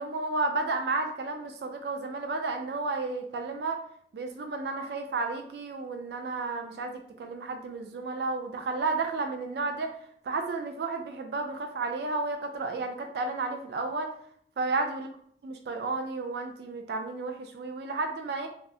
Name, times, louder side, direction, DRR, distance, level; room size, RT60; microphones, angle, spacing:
voice 1, 0.0-3.8 4.1-9.9 10.3-14.1 14.6-15.1 15.4-18.5, right 3 dB, 65° right, 4 dB, 0.3 m, -32 dB
3.4 x 2.0 x 2.6 m, 0.62 s
head